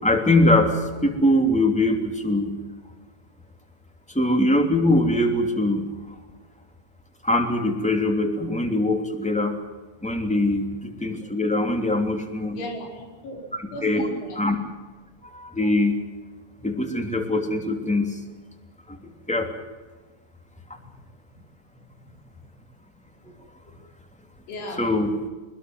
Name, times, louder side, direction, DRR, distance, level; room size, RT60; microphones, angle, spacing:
voice 1, 0.0-2.5 4.1-5.9 7.2-9.5 10.0-12.6 13.8-14.1 14.4-14.6 15.2-16.0 16.6-18.2 18.9-19.5 24.8-25.1, left 1 dB, ahead, 4 dB, 2.0 m, -22 dB
voice 2, 12.5-13.4 13.7-14.4 16.6-16.7 21.3-21.4 22.0-22.2 23.7-23.8 24.5-24.9, left 1 dB, 85° left, 2 dB, 7.7 m, -37 dB
23.5 x 22.0 x 7.7 m, 1.2 s
omnidirectional pair, 5.2 m